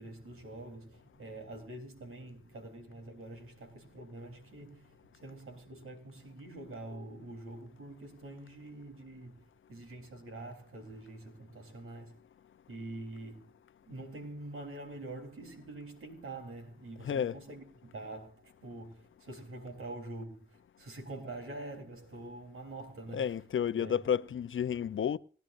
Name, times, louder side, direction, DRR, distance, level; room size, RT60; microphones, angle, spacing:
voice 1, 0.0-12.2 12.7-13.5 13.9-23.4 23.7-24.0, right 2 dB, 85° right, 3.5 m, -45 dB
voice 2, 17.0-17.4 23.1-25.2, left 8 dB, 70° left, 0.6 m, -31 dB
27.0 x 10.5 x 2.6 m
cardioid pair, 45°, 21 cm